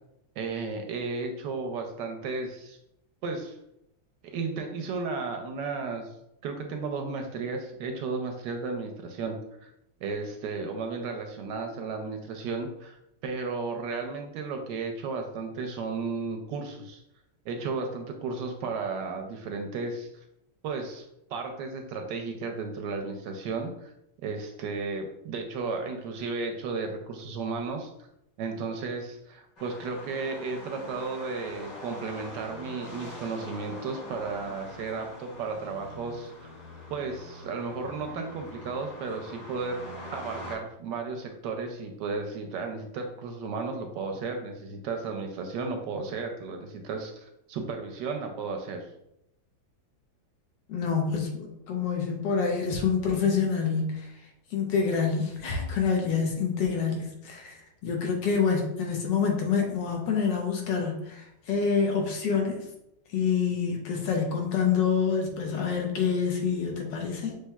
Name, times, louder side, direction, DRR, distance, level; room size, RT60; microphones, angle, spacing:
voice 1, 0.4-2.8 3.2-3.6 4.3-6.1 6.4-9.7 10.0-13.0 13.2-17.0 17.5-20.1 20.6-21.0 21.3-23.9 24.2-27.9 28.4-36.5 36.9-48.9, right 4 dB, 75° right, 4 dB, 1.1 m, -34 dB
sound 1, 29.6-40.6, left 1 dB, 50° left, 2.1 m, -43 dB
voice 2, 50.7-54.1 54.5-62.7 63.1-67.4, left 6 dB, 70° left, 1 dB, 1.4 m, -27 dB
6.3 x 3.2 x 2.2 m, 0.81 s
omnidirectional pair, 2.1 m